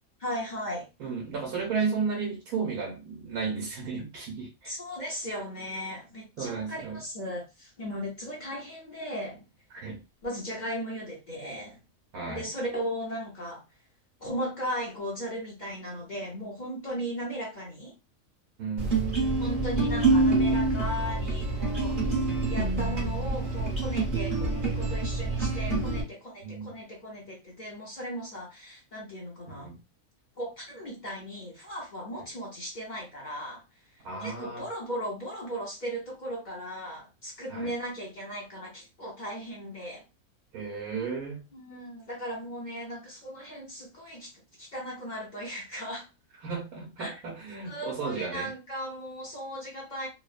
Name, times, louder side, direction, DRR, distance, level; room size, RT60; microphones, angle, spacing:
voice 1, 0.2-0.9 4.6-9.4 10.2-11.8 12.3-13.6 14.2-17.9 19.4-21.9 22.5-29.7 30.4-33.6 34.2-40.0 41.5-44.3 44.6-46.1 47.0-47.1 47.7-50.1, equal, 40° left, 0.7 m, -37 dB
voice 2, 1.0-4.7 6.4-7.0 9.7-10.0 12.1-12.5 18.6-19.0 26.4-26.8 29.5-29.8 34.0-34.7 37.5-37.7 40.5-41.5 46.4-48.5, right 5 dB, 85° right, 1.2 m, -33 dB
sound 1, 18.8-26.0, right 3 dB, 40° right, 1.1 m, -26 dB
3.0 x 2.0 x 2.4 m
omnidirectional pair, 1.5 m